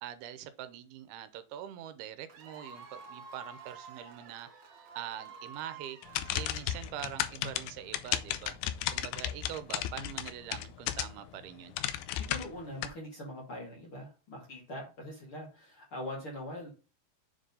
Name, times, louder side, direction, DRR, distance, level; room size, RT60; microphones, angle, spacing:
voice 1, 0.0-4.5 4.9-6.0 6.3-8.6 8.9-11.8, right 11 dB, 80° right, 2.5 m, -43 dB
Cheering / Applause / Crowd, 2.3-7.0, right 4 dB, 60° right, 3.0 m, -50 dB
sound 1, 6.0-11.3 11.7-12.9, left 12 dB, 85° left, 2.5 m, -34 dB
voice 2, 12.3-16.7, left 1 dB, 45° left, 2.1 m, -42 dB
7.1 x 3.8 x 5.3 m
omnidirectional pair, 4.6 m